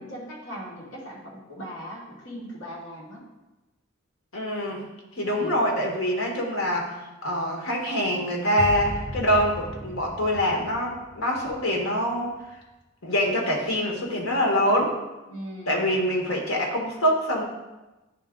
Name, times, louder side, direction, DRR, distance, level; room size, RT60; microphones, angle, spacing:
voice 1, 0.0-3.3 5.2-5.6 15.3-15.8, equal, 70° left, -5 dB, 2.2 m, -39 dB
voice 2, 4.3-4.8 5.2-7.0 7.2-12.3 13.0-15.0 15.7-17.4, equal, 85° left, -1 dB, 1.6 m, -25 dB
sound 1, 8.6-11.8 12.0-12.3, right 1 dB, 10° right, 0.4 m, -36 dB
10.0 x 3.6 x 3.8 m, 1.1 s
head